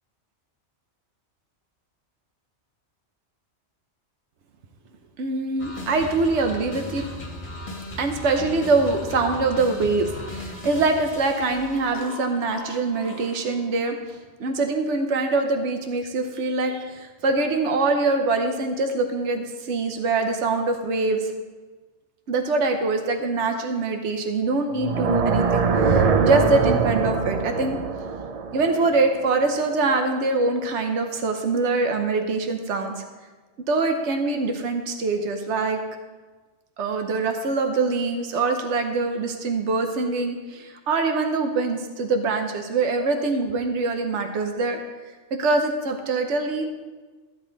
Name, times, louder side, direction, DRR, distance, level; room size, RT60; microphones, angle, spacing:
voice 1, 5.2-7.0 8.0-21.3 22.3-27.8 28.5-33.0 33.7-35.8 36.8-44.8 45.4-46.7, right 3 dB, 75° right, 5 dB, 1.2 m, -24 dB
sound 1, 5.6-13.7, left 1 dB, 40° left, 1.6 m, -37 dB
sound 2, 24.7-29.9, right 5 dB, 45° right, 0.5 m, -23 dB
14.0 x 8.1 x 3.9 m, 1.3 s
omnidirectional pair, 1.2 m